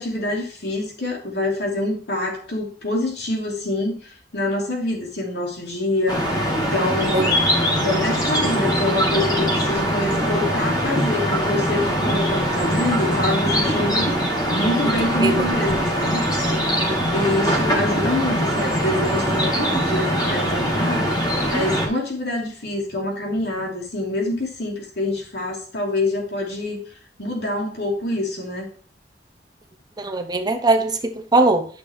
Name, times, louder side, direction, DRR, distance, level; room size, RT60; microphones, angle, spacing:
voice 1, 0.0-6.3 6.6-14.1 14.5-16.2 17.1-21.1 21.5-26.8 27.2-28.7, left 2 dB, 70° left, 2.8 m, -26 dB
sound 1, 6.1-21.9, equal, 25° left, 2.1 m, -22 dB
voice 2, 30.0-31.7, right 2 dB, 25° right, 0.9 m, -20 dB
9.6 x 6.5 x 3.5 m
head